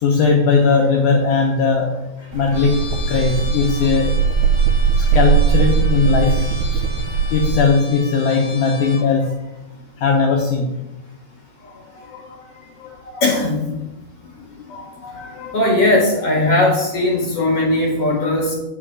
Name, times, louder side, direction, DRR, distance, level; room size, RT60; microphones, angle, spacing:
voice 1, 0.0-2.0 2.3-2.8 3.1-4.1 5.1-6.8 7.3-9.4 10.0-10.7 11.6-13.2 14.7-15.6, left 4 dB, 75° left, 1 dB, 1.8 m, -19 dB
sound 1, 2.3-7.6, right 6 dB, 80° right, 2.7 m, -19 dB
Trumpet, 2.5-9.1, left 2 dB, 10° right, 3.3 m, -36 dB
voice 2, 13.2-13.7 15.5-18.5, left 2 dB, 45° left, -2 dB, 2.3 m, -18 dB
8.2 x 5.8 x 6.1 m, 0.98 s
omnidirectional pair, 4.7 m